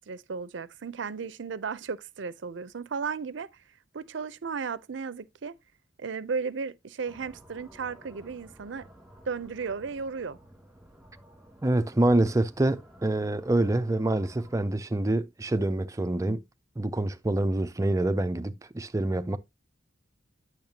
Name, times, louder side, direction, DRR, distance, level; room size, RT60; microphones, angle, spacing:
voice 1, 0.1-3.5 3.9-5.5 6.0-8.9 9.3-10.4, right 5 dB, 70° right, 0.5 m, -35 dB
sound 1, 7.0-14.7, equal, ahead, 2.2 m, -53 dB
voice 2, 11.6-16.4 16.8-19.4, right 1 dB, 15° right, 0.4 m, -26 dB
8.8 x 6.4 x 2.8 m
head